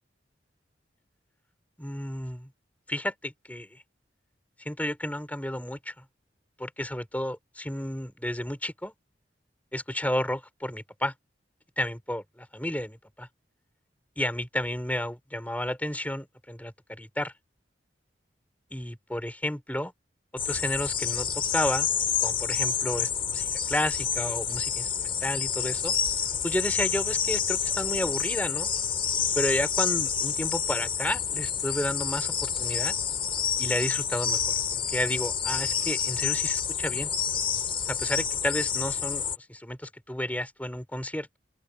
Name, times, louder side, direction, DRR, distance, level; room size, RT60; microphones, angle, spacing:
voice 1, 1.8-2.5 2.9-3.8 4.6-6.0 6.6-8.9 9.7-11.1 11.8-13.3 14.2-17.3 18.7-19.9 20.4-21.9 22.2-26.0 26.4-28.7 29.3-33.0 33.6-34.4 34.7-37.1 37.9-41.4, left 1 dB, 10° left, 5.5 m, -32 dB
sound 1, 20.4-39.4, left 7 dB, 30° left, 3.9 m, -28 dB
open air
head